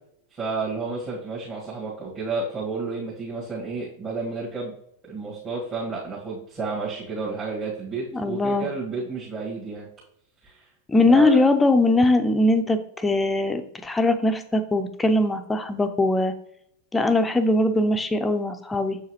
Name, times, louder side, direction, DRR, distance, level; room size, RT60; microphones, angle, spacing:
voice 1, 0.3-4.7 5.1-9.9 10.4-10.6 11.1-11.4, right 4 dB, 25° right, -7 dB, 1.7 m, -31 dB
voice 2, 8.1-8.7 10.9-16.3 16.9-19.0, left 2 dB, 10° left, 8 dB, 0.6 m, -21 dB
7.1 x 4.7 x 3.0 m, 0.74 s
figure-of-eight pair, 90°, 0 cm